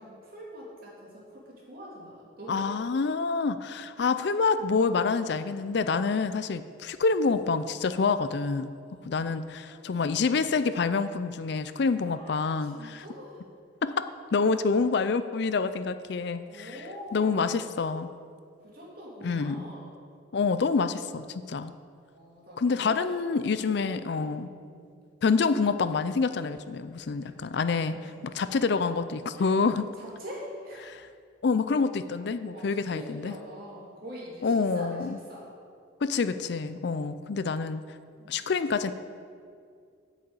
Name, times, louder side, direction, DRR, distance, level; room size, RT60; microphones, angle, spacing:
voice 1, 0.0-2.7 8.8-10.2 12.0-13.4 16.4-17.8 18.6-20.0 22.1-23.8 24.1-24.9 27.2-27.3 29.4-29.5 30.0-30.9 32.4-35.4 38.2-38.4, equal, 50° right, -5 dB, 3.0 m, -45 dB
voice 2, 2.5-8.7 9.1-13.0 13.8-16.7 17.1-18.1 19.2-19.6 20.3-21.7 22.6-24.5 25.2-28.0 28.3-29.8 30.8-31.1 31.4-33.3 34.4-35.2 36.0-37.8 38.3-38.9, left 4 dB, 60° left, 12 dB, 0.4 m, -27 dB
8.4 x 6.8 x 7.9 m, 2.3 s
head